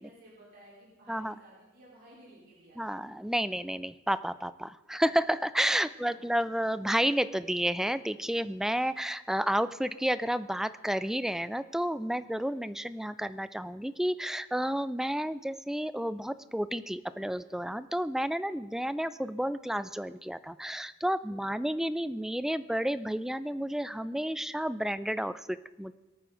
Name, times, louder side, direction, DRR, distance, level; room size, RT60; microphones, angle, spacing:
voice 1, 0.0-2.8 5.7-6.6 12.3-12.6 21.3-21.8, right 1 dB, 50° right, -7 dB, 4.3 m, -56 dB
voice 2, 2.8-25.9, equal, ahead, 14 dB, 0.4 m, -31 dB
23.0 x 9.1 x 3.9 m, 1.1 s
head